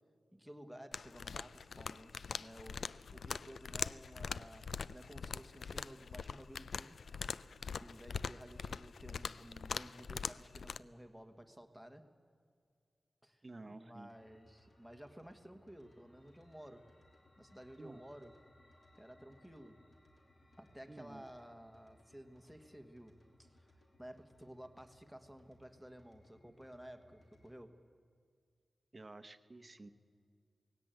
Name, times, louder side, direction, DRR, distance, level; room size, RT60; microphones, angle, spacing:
voice 1, 0.3-7.0 7.8-12.1 13.2-16.9 17.4-18.3 19.0-19.9 20.6-23.7 24.0-27.8, equal, ahead, 8 dB, 1.4 m, -54 dB
sound 1, 0.9-10.8, left 5 dB, 85° left, 0.4 m, -43 dB
voice 2, 13.4-14.1 17.8-18.0 20.9-21.2 28.9-29.9, right 2 dB, 30° right, 9 dB, 0.9 m, -52 dB
sound 2, 14.1-27.6, left 1 dB, 50° left, 3.2 m, -67 dB
18.0 x 17.0 x 9.0 m, 2.2 s
wide cardioid pair, 135°, 0 cm